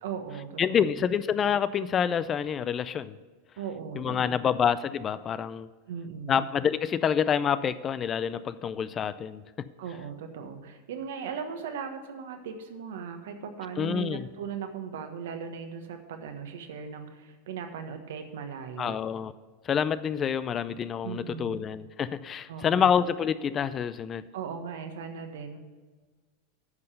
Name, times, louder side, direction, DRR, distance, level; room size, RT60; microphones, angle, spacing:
voice 1, 0.0-1.0 3.6-4.3 5.9-6.5 9.8-19.0 20.2-20.3 21.0-21.6 22.5-22.9 24.3-25.6, right 7 dB, 75° right, 6 dB, 1.3 m, -38 dB
voice 2, 0.6-3.2 3.9-5.7 6.3-9.7 13.8-14.3 18.8-19.3 19.6-24.3, left 8 dB, 30° left, 15 dB, 0.4 m, -27 dB
9.6 x 5.6 x 6.7 m, 1.4 s
hypercardioid pair, 100°, 0 cm